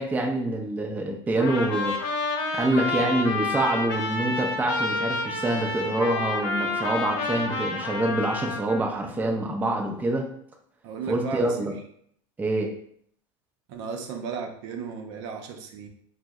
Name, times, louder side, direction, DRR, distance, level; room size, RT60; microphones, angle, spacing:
voice 1, 0.0-1.9 2.5-10.3 11.1-11.7 12.4-12.7, right 2 dB, 10° right, 1 dB, 0.4 m, -26 dB
Trumpet, 1.4-8.8, left 3 dB, 60° left, 0.7 m, -29 dB
voice 2, 10.8-11.8 13.7-15.9, right 5 dB, 65° right, 3 dB, 0.5 m, -35 dB
2.7 x 2.0 x 3.5 m, 0.66 s
supercardioid pair, 120°, 16 cm